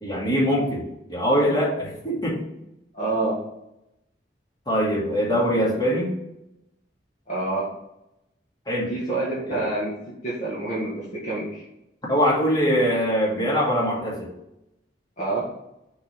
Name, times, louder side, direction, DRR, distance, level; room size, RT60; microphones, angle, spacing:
voice 1, 0.0-2.5 4.7-6.1 8.7-8.9 9.5-9.7 12.1-14.3, equal, 25° left, -5 dB, 2.5 m, -23 dB
voice 2, 2.9-3.4 7.3-7.7 8.9-9.9 10.2-11.7 15.2-15.5, right 2 dB, 45° left, -6 dB, 1.8 m, -27 dB
6.7 x 4.1 x 5.2 m, 0.84 s
head